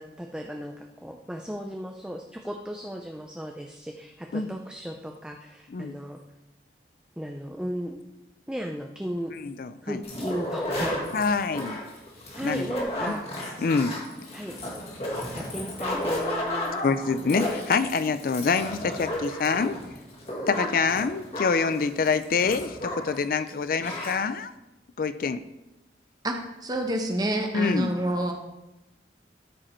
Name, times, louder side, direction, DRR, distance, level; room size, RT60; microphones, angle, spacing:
voice 1, 0.0-6.2 7.2-8.0 8.5-9.3 9.8-11.0 12.3-13.2 14.3-14.6 15.3-16.8, equal, 5° right, 2 dB, 0.5 m, -35 dB
voice 2, 9.3-10.0 11.1-11.8 12.4-12.7 13.1-13.2 13.6-14.0 16.8-19.8 20.5-24.5 25.0-25.4 27.5-28.0, left 5 dB, 55° left, 12 dB, 0.4 m, -26 dB
sound 1, 10.0-23.2 23.5-23.6 23.8-24.1, left 1 dB, 35° left, 1.9 m, -33 dB
voice 3, 26.6-28.3, right 1 dB, 20° right, 3 dB, 1.0 m, -27 dB
13.0 x 5.0 x 4.4 m, 0.96 s
head